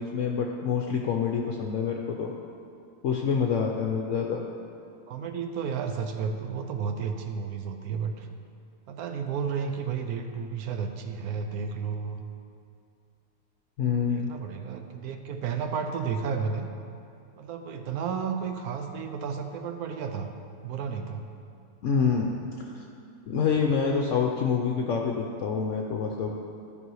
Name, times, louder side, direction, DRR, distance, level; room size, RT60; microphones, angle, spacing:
voice 1, 0.0-2.3 3.0-4.4 13.8-14.3 21.8-22.4 22.7-22.8 23.3-26.3, left 6 dB, 60° left, 1 dB, 0.9 m, -27 dB
voice 2, 5.1-8.3 8.9-12.2 14.1-16.7 17.4-20.3 20.6-21.3, right 6 dB, 70° right, 6 dB, 1.2 m, -32 dB
13.5 x 5.5 x 4.7 m, 2.5 s
omnidirectional pair, 1.7 m